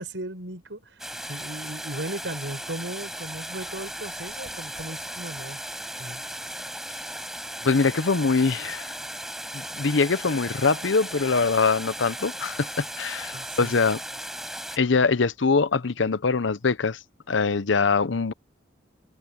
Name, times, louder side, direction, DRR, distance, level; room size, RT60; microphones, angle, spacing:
voice 1, 0.0-5.6 6.0-6.2 13.3-13.8, right 1 dB, 75° right, 5.9 m, -37 dB
sound 1, 1.0-14.8, right 1 dB, ahead, 7.3 m, -36 dB
voice 2, 7.6-8.9 9.5-14.0 14.8-17.0 17.3-18.3, left 4 dB, 80° left, 0.8 m, -23 dB
head